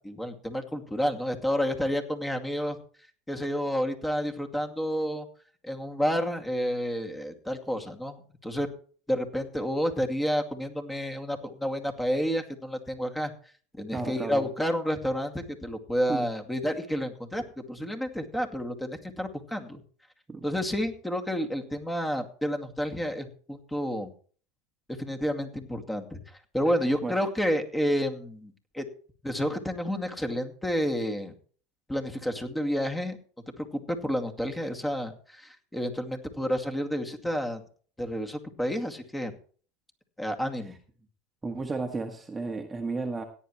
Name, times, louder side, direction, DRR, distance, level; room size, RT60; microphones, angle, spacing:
voice 1, 0.0-2.8 3.3-5.3 5.6-8.7 9.1-13.3 13.7-19.8 20.4-24.1 25.0-28.8 29.2-31.3 31.9-33.2 33.6-37.6 38.0-39.3 40.2-40.8, equal, 10° left, 4 dB, 2.3 m, -30 dB
voice 2, 13.9-14.5 16.1-16.2 20.3-20.4 27.0-27.2 41.4-43.2, right 3 dB, 15° right, 3 dB, 1.5 m, -33 dB
17.0 x 9.8 x 3.2 m, 0.42 s
hypercardioid pair, 100°, 0 cm